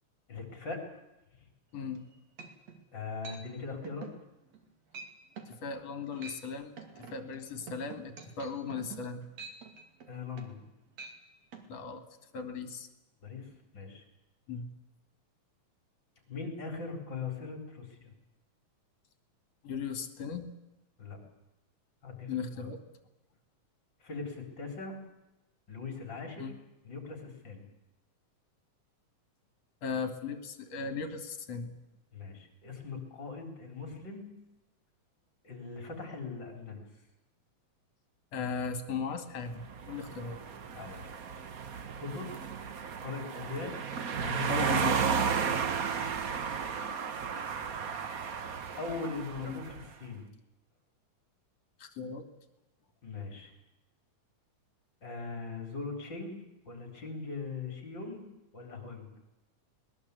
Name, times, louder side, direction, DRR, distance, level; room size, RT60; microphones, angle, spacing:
voice 1, 0.3-0.8 2.9-4.1 10.1-10.7 13.2-14.0 16.3-18.1 21.0-21.2 22.0-22.7 24.0-25.0 25.7-26.5 26.8-27.7 32.1-34.3 35.4-36.8 40.7-41.0 42.0-42.4 43.0-43.8 44.2-44.6 45.4-45.8 48.8-49.7 50.0-50.3 53.0-53.5 55.0-58.2 58.5-59.1, left 4 dB, 35° left, 5 dB, 4.5 m, -40 dB
voice 2, 1.7-2.1 5.6-6.7 7.1-9.2 11.7-12.0 12.3-12.9 14.5-14.7 19.6-20.5 22.3-22.8 26.4-26.5 29.8-31.8 38.3-40.4 44.5-45.0 49.4-49.6 51.8-52.3, left 5 dB, 55° left, 9 dB, 3.3 m, -37 dB
sound 1, 1.9-2.0 2.4-2.8 3.2-3.4 3.8-4.2 4.5-4.7 4.9-5.1 5.4-5.6 6.0-6.4 6.8-10.7 10.9-11.2 11.5-11.7, right 5 dB, 60° right, 3.7 m, -46 dB
sound 2, 39.6-49.9, right 6 dB, 90° right, 0.7 m, -34 dB
21.5 x 20.5 x 8.3 m, 0.98 s
omnidirectional pair, 3.4 m